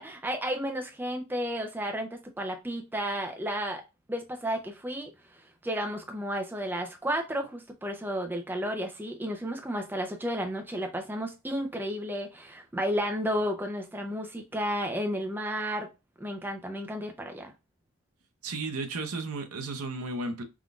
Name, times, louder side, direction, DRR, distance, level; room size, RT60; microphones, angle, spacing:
voice 1, 0.0-3.8 4.1-5.1 5.6-15.9 16.2-17.5, equal, 10° right, 0.4 m, -32 dB
voice 2, 18.4-20.4, right 3 dB, 80° right, 0.7 m, -34 dB
3.6 x 2.5 x 2.3 m
head